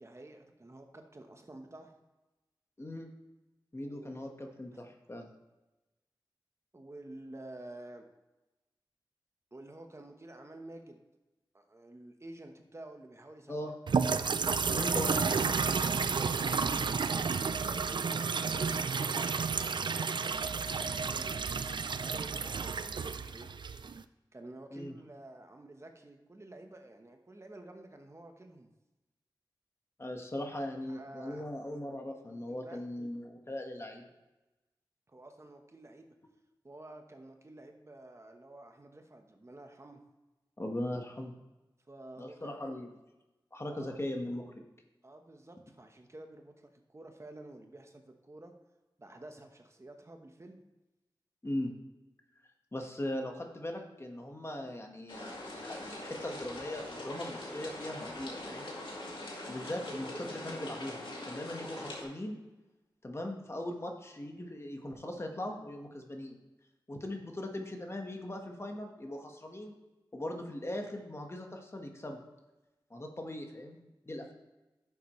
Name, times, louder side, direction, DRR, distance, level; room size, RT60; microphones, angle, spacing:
voice 1, 0.0-1.9 3.8-4.2 6.7-8.1 9.5-11.0 11.5-13.7 15.9-17.1 17.6-21.5 22.0-23.5 24.3-28.7 30.9-31.4 32.5-32.8 35.1-36.1 36.6-40.0 41.9-42.7 43.6-44.0 45.0-48.5 49.0-50.6, right 2 dB, 35° right, 4 dB, 1.1 m, -50 dB
voice 2, 2.8-3.1 3.7-5.3 13.5-13.7 14.7-15.6 24.7-24.9 30.0-34.1 40.6-41.3 42.2-42.9 43.5-44.6 51.4-51.7 52.7-58.7 59.5-62.4 63.0-66.4 66.9-69.7 70.1-72.2 72.9-73.8 74.0-74.3, left 1 dB, 35° left, 3 dB, 1.4 m, -39 dB
sound 1, 13.9-24.0, right 5 dB, 70° right, 0.4 m, -31 dB
sound 2, 55.1-62.0, left 1 dB, 85° left, 2.1 m, -42 dB
11.0 x 7.2 x 3.2 m, 1.1 s
wide cardioid pair, 65°, 8 cm